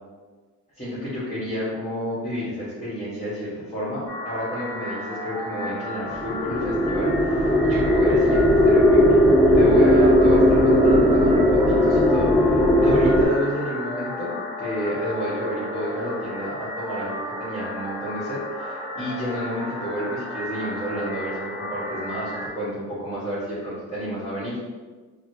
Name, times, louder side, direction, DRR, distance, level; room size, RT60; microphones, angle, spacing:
voice 1, 0.7-9.2 9.5-14.3 14.6-24.7, equal, 20° left, -13 dB, 1.3 m, -30 dB
sound 1, 4.1-22.5, left 1 dB, 80° left, 0.9 m, -33 dB
sound 2, 6.2-13.3, left 1 dB, ahead, 0.5 m, -17 dB
4.1 x 2.2 x 2.7 m, 1.4 s
cardioid pair, 90°, 30 cm